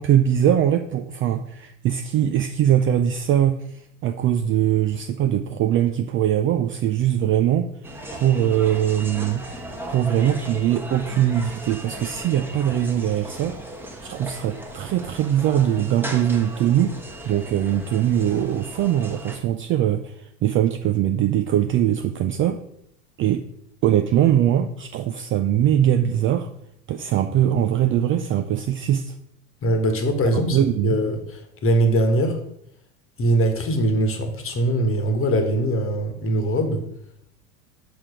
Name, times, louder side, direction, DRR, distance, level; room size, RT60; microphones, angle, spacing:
voice 1, 0.0-7.7 8.1-9.4 9.9-13.6 14.0-17.0 17.2-22.6 23.2-23.4 23.8-26.5 26.9-29.1 30.3-31.0, right 10 dB, 30° right, 7 dB, 0.4 m, -21 dB
sound 1, 7.8-19.4, right 1 dB, 5° right, 1.1 m, -37 dB
voice 2, 29.6-32.4 33.2-36.8, right 1 dB, 30° left, 6 dB, 1.3 m, -22 dB
6.0 x 4.7 x 4.9 m, 0.74 s
hypercardioid pair, 85°, 45 cm